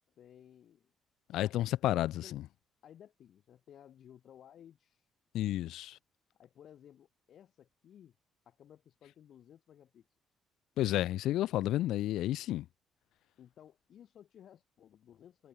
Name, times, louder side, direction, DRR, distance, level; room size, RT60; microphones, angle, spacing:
voice 1, 0.2-0.9 1.3-1.6 2.0-2.4 2.8-5.1 6.3-8.2 8.5-10.1 13.4-15.5, left 10 dB, 65° left, 7.4 m, -57 dB
voice 2, 1.3-2.4 5.3-6.0 10.8-12.7, left 14 dB, 85° left, 0.7 m, -31 dB
cardioid pair, 90°, 0 cm